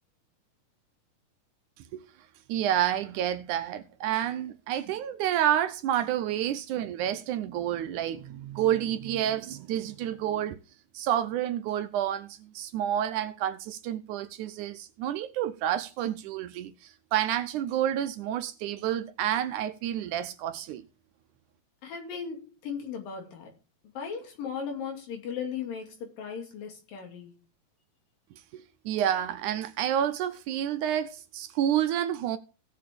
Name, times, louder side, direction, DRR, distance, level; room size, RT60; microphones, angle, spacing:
voice 1, 2.5-10.6 10.9-20.8 28.5-32.4, right 11 dB, 75° right, 2.0 m, -29 dB
voice 2, 21.8-23.5 23.8-27.4, left 6 dB, 85° left, 4.2 m, -37 dB
17.0 x 6.7 x 3.6 m
omnidirectional pair, 3.9 m